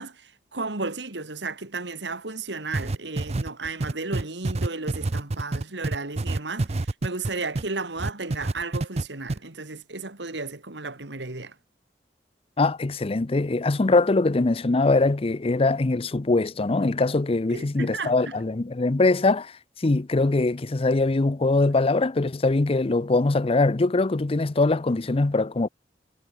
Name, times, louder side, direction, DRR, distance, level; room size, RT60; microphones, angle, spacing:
voice 1, 0.0-11.5 17.5-18.1, right 3 dB, 90° right, 2.5 m, -34 dB
sound 1, 2.7-7.7 8.0-9.0 9.3-9.4, right 2 dB, 35° right, 0.6 m, -26 dB
voice 2, 12.6-25.7, left 3 dB, 35° left, 0.6 m, -22 dB
head